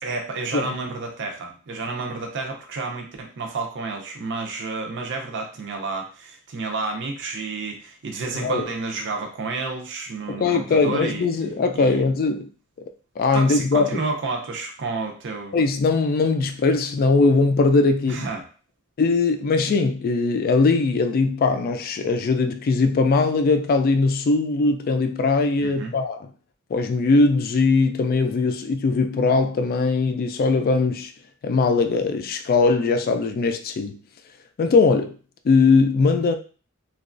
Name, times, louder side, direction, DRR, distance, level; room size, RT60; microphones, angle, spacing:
voice 1, 0.0-11.2 11.8-12.0 13.3-15.6 18.1-18.4 25.6-25.9, right 3 dB, 60° right, 0.5 m, -30 dB
voice 2, 8.3-8.7 10.3-12.5 13.2-13.9 15.5-18.3 19.0-26.3 26.7-31.1 31.4-34.0 34.6-35.2 35.4-36.3, left 3 dB, 45° left, 0.3 m, -20 dB
3.0 x 2.3 x 2.5 m
head